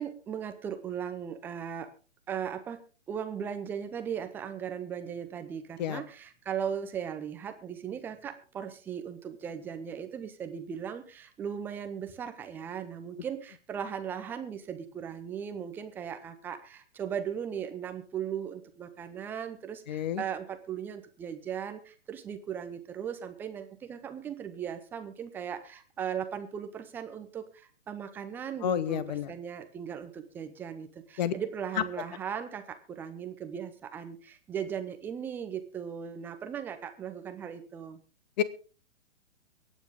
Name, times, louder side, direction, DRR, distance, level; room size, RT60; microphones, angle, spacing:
voice 1, 0.0-1.9 2.3-2.8 3.1-38.0, right 8 dB, 5° right, 9 dB, 0.6 m, -38 dB
voice 2, 19.9-20.2 28.6-29.3 31.2-31.3 38.4-38.5, left 10 dB, 35° left, 16 dB, 1.2 m, -29 dB
23.5 x 9.0 x 3.7 m, 0.37 s
figure-of-eight pair, 125°, 37 cm